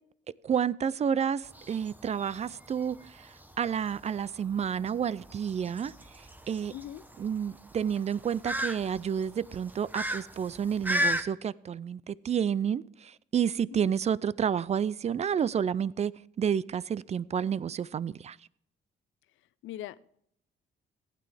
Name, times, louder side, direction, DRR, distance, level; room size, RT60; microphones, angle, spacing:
voice 1, 0.4-6.7 7.2-16.1 16.4-18.4, right 8 dB, 35° right, 0.3 m, -30 dB
sound 1, 1.4-11.2, equal, 10° right, 0.9 m, -35 dB
voice 2, 6.7-7.0 13.7-13.9 19.6-20.2, left 12 dB, 80° left, 0.5 m, -41 dB
15.5 x 9.1 x 3.3 m
cardioid pair, 90°, 20 cm